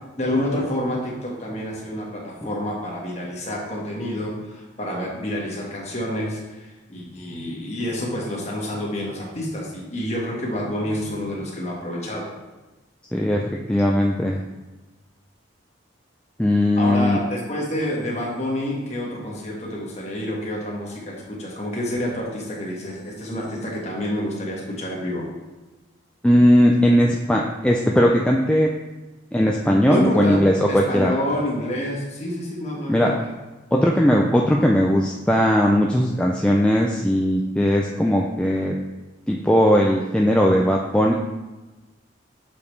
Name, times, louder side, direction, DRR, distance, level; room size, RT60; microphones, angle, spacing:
voice 1, 0.2-12.3 16.8-25.2 29.9-30.4 30.7-33.3, left 1 dB, 35° left, -3 dB, 1.4 m, -28 dB
voice 2, 13.1-14.4 16.4-17.2 26.2-28.7 29.3-31.1 32.9-33.1 33.7-38.8 39.3-41.1, equal, 5° left, -1 dB, 0.3 m, -18 dB
6.9 x 5.1 x 3.2 m, 1.2 s
head